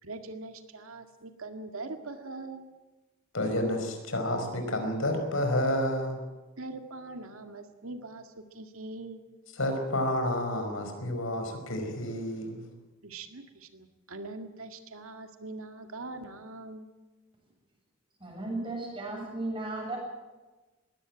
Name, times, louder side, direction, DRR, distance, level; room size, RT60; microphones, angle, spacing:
voice 1, 0.0-2.7 6.6-9.2 13.0-16.9, right 2 dB, 80° right, 6 dB, 2.0 m, -42 dB
voice 2, 3.3-6.2 9.5-12.7, left 1 dB, 70° left, 5 dB, 5.1 m, -30 dB
voice 3, 18.2-20.0, right 2 dB, 25° right, 0 dB, 7.8 m, -35 dB
22.0 x 17.0 x 8.8 m, 1.2 s
head